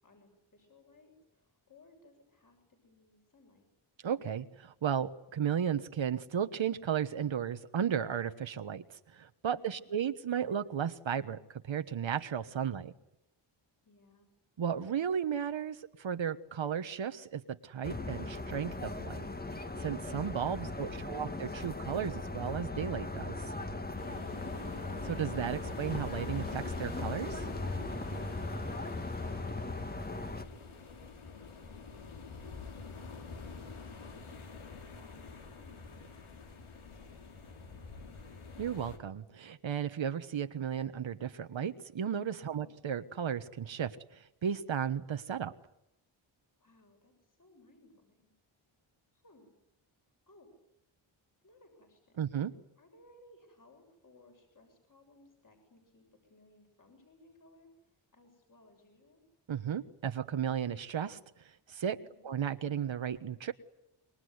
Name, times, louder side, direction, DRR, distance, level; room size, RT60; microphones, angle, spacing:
voice 1, 0.0-3.7 9.7-9.9 13.8-14.3 28.6-31.7 32.4-32.6 32.9-38.2 42.4-42.8 46.6-48.3 49.1-49.5 50.3-50.5 51.4-52.3 52.8-59.2 62.0-62.3, left 2 dB, 40° left, 3 dB, 7.4 m, -62 dB
voice 2, 4.0-12.9 14.6-19.3 19.8-23.5 25.1-27.5 38.6-45.5 52.2-52.5 59.5-62.0 62.2-63.5, right 8 dB, 65° right, 10 dB, 1.3 m, -34 dB
sound 1, 17.8-30.4, left 2 dB, 20° left, 1.6 m, -38 dB
sound 2, 24.0-39.0, left 4 dB, 80° left, 4.1 m, -47 dB
26.5 x 23.5 x 9.6 m, 0.81 s
wide cardioid pair, 130°, 49 cm